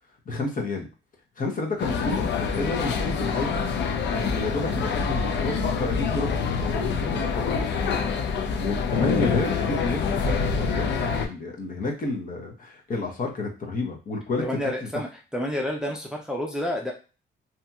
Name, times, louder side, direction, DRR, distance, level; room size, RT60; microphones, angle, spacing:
voice 1, 0.3-0.9 1.4-3.6 4.1-8.0 8.6-11.0 11.2-14.9, left 2 dB, 45° left, 0 dB, 0.9 m, -31 dB
sound 1, 1.8-11.3, left 5 dB, 65° left, 0.5 m, -26 dB
voice 2, 14.4-15.1 15.3-16.9, left 1 dB, 5° right, 0 dB, 0.6 m, -29 dB
2.8 x 2.7 x 2.3 m, 0.32 s
cardioid pair, 90°, 20 cm